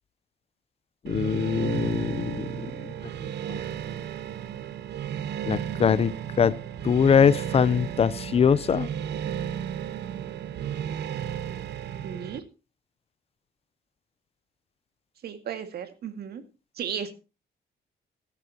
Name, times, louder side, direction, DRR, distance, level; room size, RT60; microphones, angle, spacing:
voice 1, 1.0-2.9 3.5-3.6 5.5-6.6 6.8-8.9, left 7 dB, 35° left, 0.6 m, -23 dB
sound 1, 1.1-12.4, right 9 dB, 80° right, 1.0 m, -34 dB
voice 2, 12.0-12.4 15.2-16.4 16.8-17.1, right 8 dB, 65° right, 2.0 m, -34 dB
16.5 x 13.0 x 2.9 m
cardioid pair, 155°, 17 cm